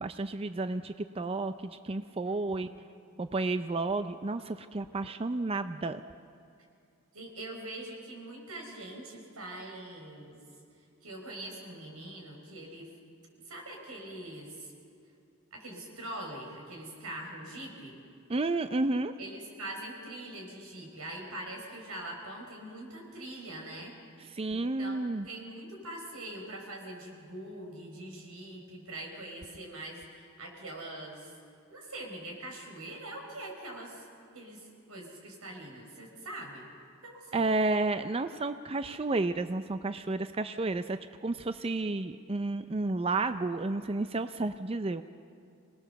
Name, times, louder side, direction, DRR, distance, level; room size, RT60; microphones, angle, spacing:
voice 1, 0.0-2.7 3.2-6.0 18.3-19.1 24.3-25.3 37.3-45.0, right 2 dB, 25° right, 10 dB, 0.5 m, -31 dB
voice 2, 2.2-2.7 7.1-10.4 11.0-12.9 13.5-14.7 15.5-17.9 19.2-23.9 24.5-31.3 31.7-34.0 34.3-36.7 37.0-37.5, right 1 dB, 90° right, 1 dB, 4.9 m, -43 dB
26.0 x 19.0 x 6.9 m, 2.4 s
head